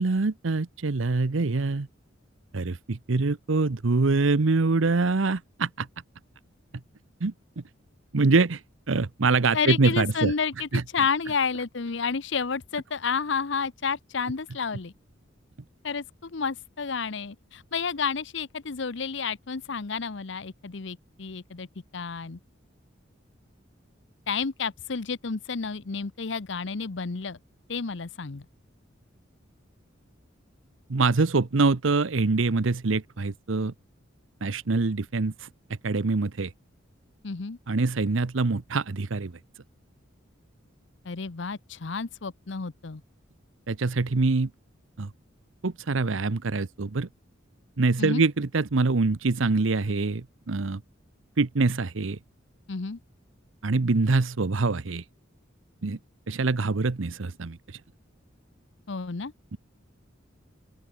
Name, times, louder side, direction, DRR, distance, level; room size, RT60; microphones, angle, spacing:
voice 1, 0.0-1.9 2.5-5.9 7.2-7.6 8.1-8.6 8.9-10.3 10.7-10.8 30.9-33.7 34.4-35.5 35.8-36.5 37.7-39.4 43.7-44.5 45.0-45.1 45.6-47.1 47.8-50.8 51.4-52.2 53.6-55.0 55.8-56.0 56.3-57.8 59.5-59.6, right 3 dB, 75° right, 0.8 m, -24 dB
voice 2, 9.5-10.7 10.9-14.9 15.8-21.7 21.9-22.4 24.3-27.4 27.7-28.4 37.2-37.6 41.0-43.0 48.0-48.2 52.7-53.0 58.9-59.3, left 5 dB, 65° left, 0.8 m, -30 dB
open air
head